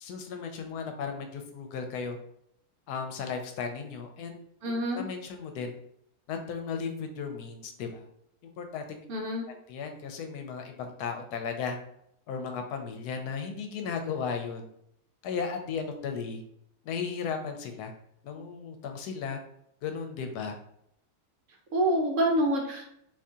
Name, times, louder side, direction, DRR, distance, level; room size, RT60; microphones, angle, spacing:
voice 1, 0.0-2.2 2.9-4.4 4.7-5.7 6.3-8.1 8.6-9.0 9.5-11.8 12.3-14.7 15.2-16.4 16.8-17.9 18.2-19.4 19.8-20.6, left 6 dB, 80° left, 5 dB, 1.1 m, -35 dB
voice 2, 4.6-5.0 9.1-9.5 21.7-22.9, right 1 dB, 65° right, 0 dB, 0.9 m, -27 dB
2.8 x 2.7 x 3.5 m, 0.73 s
omnidirectional pair, 1.7 m